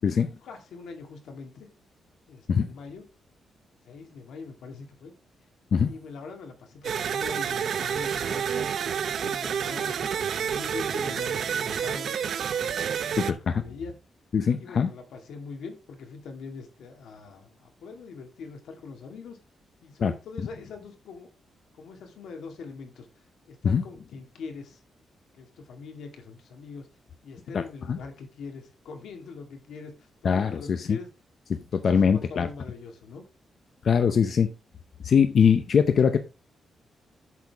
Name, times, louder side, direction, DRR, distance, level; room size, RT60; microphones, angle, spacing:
voice 1, 0.0-1.7 2.3-3.1 3.9-5.1 5.8-8.7 9.0-12.3 12.6-13.9 14.6-19.4 19.8-21.3 21.7-23.1 23.5-24.8 25.3-26.9 27.2-31.1 31.9-33.3 34.2-34.3, left 4 dB, 85° left, 4 dB, 2.2 m, -42 dB
sound 1, 6.8-13.3, right 7 dB, 60° right, 0.7 m, -29 dB
voice 2, 13.2-13.6 14.3-14.9 20.0-20.1 23.6-23.8 27.9-28.0 30.2-31.0 31.5-32.5 33.8-34.5 35.0-36.2, left 7 dB, 50° left, 9 dB, 0.7 m, -22 dB
8.3 x 6.5 x 3.5 m, 0.29 s
wide cardioid pair, 145°, 0 cm